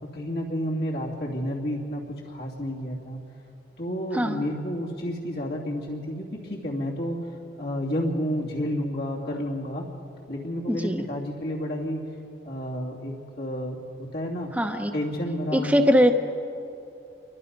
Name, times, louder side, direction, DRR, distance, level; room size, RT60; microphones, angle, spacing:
voice 1, 0.0-3.2 3.8-7.3 7.6-9.9 10.3-12.0 12.4-14.5 14.9-15.8, equal, 65° left, -3 dB, 2.8 m, -30 dB
voice 2, 10.7-11.1 14.5-14.9 15.5-16.1, equal, 10° right, 4 dB, 1.0 m, -21 dB
28.0 x 23.5 x 5.4 m, 2.8 s
head